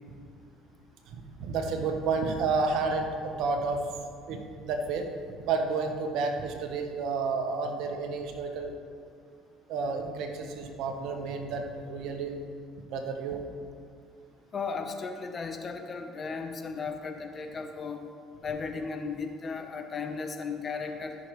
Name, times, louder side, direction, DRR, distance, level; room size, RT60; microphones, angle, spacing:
voice 1, 1.1-3.9 4.3-8.7 9.7-12.3 12.9-13.4, right 4 dB, 70° right, 4 dB, 1.1 m, -31 dB
voice 2, 14.5-18.1 18.4-21.2, left 4 dB, 40° left, 6 dB, 0.9 m, -35 dB
14.0 x 6.2 x 3.2 m, 2.2 s
supercardioid pair, 75°, 0 cm